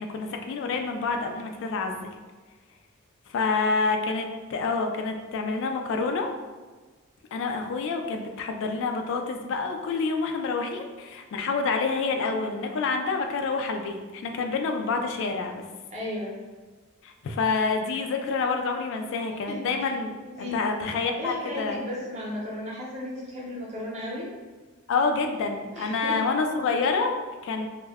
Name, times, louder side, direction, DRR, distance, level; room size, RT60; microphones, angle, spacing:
voice 1, 0.0-2.1 3.3-6.3 7.3-15.6 17.0-20.1 20.5-21.8 24.9-27.7, left 4 dB, 60° left, 4 dB, 0.3 m, -28 dB
voice 2, 15.9-16.4 19.5-19.9 20.2-20.6 21.2-24.3 25.7-26.2, left 1 dB, 35° right, -4 dB, 0.7 m, -35 dB
2.2 x 2.1 x 3.3 m, 1.3 s
head